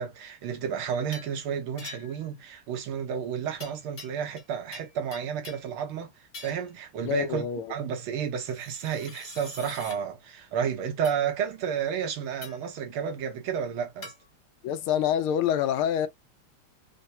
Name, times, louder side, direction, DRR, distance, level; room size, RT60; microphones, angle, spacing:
voice 1, 0.0-6.1 6.4-14.1, right 7 dB, 80° right, 1.8 m, -31 dB
sound 1, 1.1-1.4 1.8-2.3 3.6-4.5 4.7-5.7 6.3-6.7 8.4-10.0 11.0-11.2 12.4-12.7 14.0-14.2, left 4 dB, 40° left, 1.1 m, -45 dB
voice 2, 7.1-7.7 14.6-16.1, left 9 dB, 80° left, 1.6 m, -26 dB
4.4 x 2.1 x 2.7 m
omnidirectional pair, 2.3 m